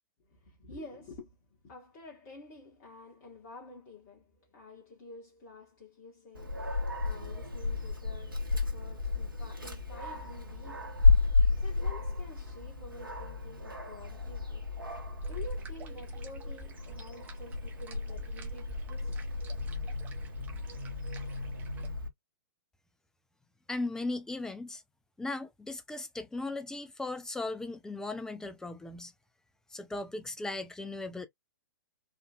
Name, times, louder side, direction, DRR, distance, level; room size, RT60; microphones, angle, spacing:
voice 1, 0.3-1.4 1.6-11.0 11.4-14.7 15.3-19.7, left 3 dB, 40° left, 1.7 m, -50 dB
Dog, 6.3-22.1, left 3 dB, 85° right, 1.4 m, -32 dB
sound 1, 15.2-21.9, right 5 dB, 15° right, 0.9 m, -49 dB
voice 2, 23.7-24.8 25.2-29.1 29.7-31.3, left 2 dB, 5° left, 0.4 m, -37 dB
4.3 x 2.6 x 2.4 m
figure-of-eight pair, 110°, 11 cm